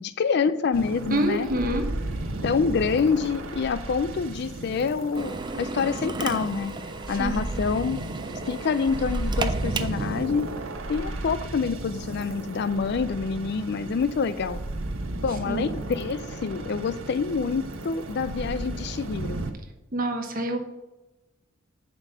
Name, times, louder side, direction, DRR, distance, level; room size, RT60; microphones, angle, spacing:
voice 1, 0.0-1.5 2.4-6.7 7.1-8.0 8.5-10.6 10.9-14.6 15.2-19.4, left 5 dB, 55° left, 13 dB, 0.4 m, -27 dB
sound 1, 0.7-19.5, right 2 dB, 80° right, 1.1 m, -34 dB
voice 2, 1.1-1.9 7.1-7.4 15.5-15.7 19.9-20.6, right 1 dB, 45° right, 6 dB, 1.1 m, -27 dB
Drill, 5.1-10.2, right 3 dB, 20° right, 0.5 m, -34 dB
8.3 x 5.2 x 5.6 m, 1.0 s
head